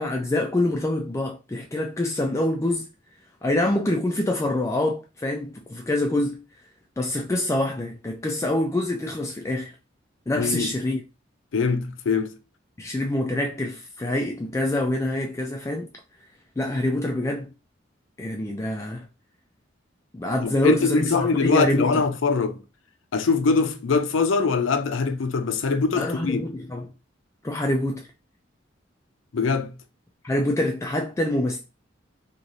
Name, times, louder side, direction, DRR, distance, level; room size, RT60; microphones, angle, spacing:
voice 1, 0.0-2.9 3.4-6.4 7.0-9.7 10.3-11.0 12.8-15.9 16.6-17.5 18.2-19.0 20.1-22.0 26.0-26.9 27.4-28.0 30.2-31.6, left 1 dB, 15° left, 0.3 m, -25 dB
voice 2, 10.3-10.7 11.5-12.3 20.4-22.6 23.1-26.5 29.3-29.7, left 4 dB, 80° left, 0.5 m, -23 dB
3.1 x 2.9 x 2.6 m
head